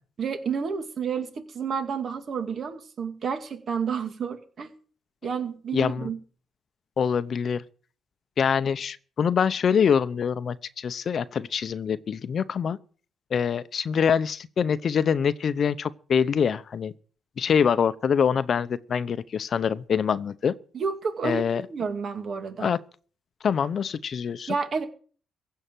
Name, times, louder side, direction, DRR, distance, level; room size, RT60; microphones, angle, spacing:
voice 1, 0.2-4.7 5.2-6.2 20.7-22.7 24.5-24.9, right 6 dB, 50° right, 2.2 m, -30 dB
voice 2, 5.7-6.1 7.0-7.6 8.4-12.8 13.3-16.9 17.4-20.6 21.2-21.6 22.6-22.8 23.4-24.5, left 7 dB, 55° left, 0.7 m, -25 dB
16.0 x 5.7 x 9.1 m
cardioid pair, 90°, 0 cm